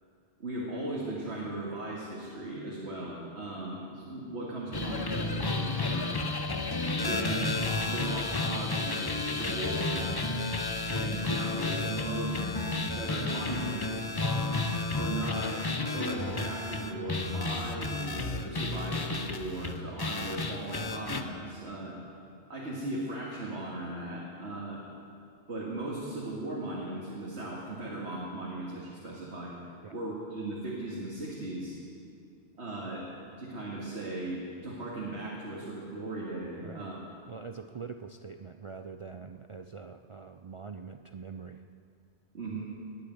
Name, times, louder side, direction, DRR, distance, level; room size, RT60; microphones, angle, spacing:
voice 1, 0.4-6.2 6.9-10.0 10.9-14.1 14.9-15.6 15.9-22.0 22.5-24.8 25.5-29.5 29.9-31.8 32.6-33.1 33.4-36.9 42.3-42.7, right 2 dB, 70° right, -5 dB, 2.4 m, -37 dB
sound 1, 4.7-21.2, left 3 dB, 25° left, 0.6 m, -32 dB
voice 2, 37.3-41.6, right 5 dB, 55° right, 7 dB, 0.3 m, -44 dB
19.5 x 6.9 x 9.3 m, 2.5 s
omnidirectional pair, 1.2 m